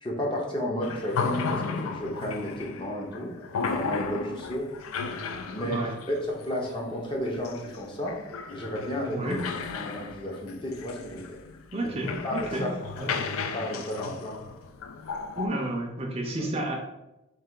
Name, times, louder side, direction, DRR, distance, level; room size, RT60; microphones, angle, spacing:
voice 1, 0.0-3.3 3.6-4.7 5.5-8.2 8.5-9.3 9.7-11.4 11.8-11.9 12.2-12.7 12.9-14.5, left 1 dB, 25° left, -1 dB, 0.6 m, -32 dB
sound 1, 0.8-15.5, left 5 dB, 90° left, 0.4 m, -35 dB
voice 2, 5.6-5.9 9.1-9.4 11.7-12.7 12.9-13.1 15.4-16.7, right 1 dB, 30° right, 1 dB, 0.4 m, -31 dB
3.2 x 2.6 x 3.7 m, 0.94 s
head